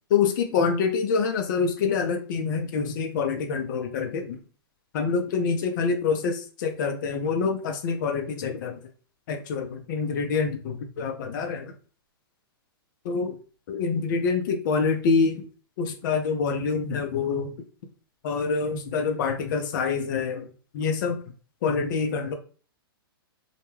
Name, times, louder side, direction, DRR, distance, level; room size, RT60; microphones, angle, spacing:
voice 1, 0.1-4.4 4.9-8.8 9.3-11.7 13.0-13.4 13.7-15.5 15.8-17.6 18.2-20.5 20.7-21.2 21.6-22.3, left 5 dB, 50° left, 5 dB, 0.5 m, -26 dB
2.2 x 2.2 x 3.1 m, 0.40 s
hypercardioid pair, 120°, 13 cm